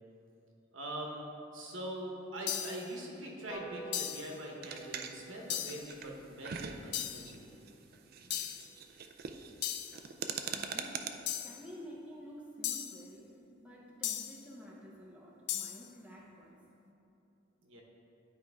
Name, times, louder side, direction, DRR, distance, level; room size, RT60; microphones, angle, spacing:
voice 1, 0.7-7.5 8.1-8.4 17.6-17.8, right 1 dB, 70° right, -1 dB, 1.1 m, -43 dB
sound 1, 2.5-2.9 3.9-4.3 5.5-5.9 6.9-7.3 8.3-8.7 9.6-10.0 11.3-11.6 12.6-13.0 14.0-14.4 15.5-15.9, left 11 dB, 55° left, 0.4 m, -37 dB
sound 2, 3.5-10.2 10.7-10.8 11.1-11.2 11.5-11.6 11.9-12.0 12.2-12.5 12.9-13.0, right 2 dB, 70° left, 1.7 m, -53 dB
sound 3, 4.6-11.1, right 6 dB, 45° right, 0.4 m, -43 dB
voice 2, 10.5-16.6, equal, 5° right, -4 dB, 0.7 m, -51 dB
11.0 x 4.6 x 3.5 m, 2.8 s
head